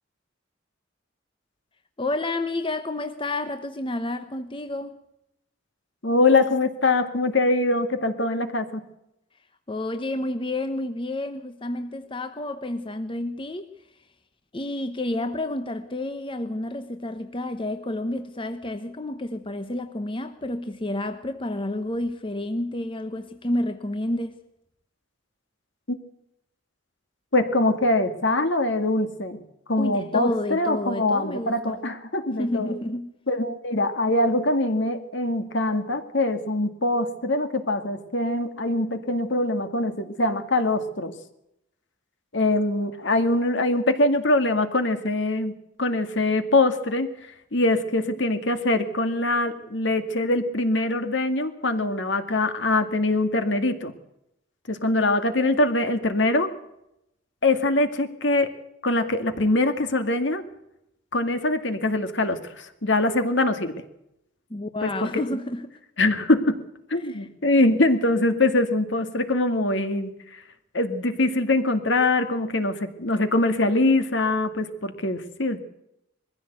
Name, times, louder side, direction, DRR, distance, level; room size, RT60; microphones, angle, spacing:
voice 1, 2.0-5.0 9.7-13.7 14.5-24.4 29.8-31.8 32.4-33.1 64.5-65.8 67.0-67.3, left 1 dB, 25° left, 0.9 m, -30 dB
voice 2, 6.0-8.8 27.3-29.4 29.7-32.7 33.3-41.1 42.3-45.5 45.8-47.1 47.5-53.9 54.7-56.5 57.4-58.5 58.8-60.4 61.1-63.7 64.8-65.1 66.0-66.6 66.9-70.4 70.7-75.6, left 2 dB, 65° left, 2.1 m, -23 dB
22.0 x 15.0 x 8.1 m
head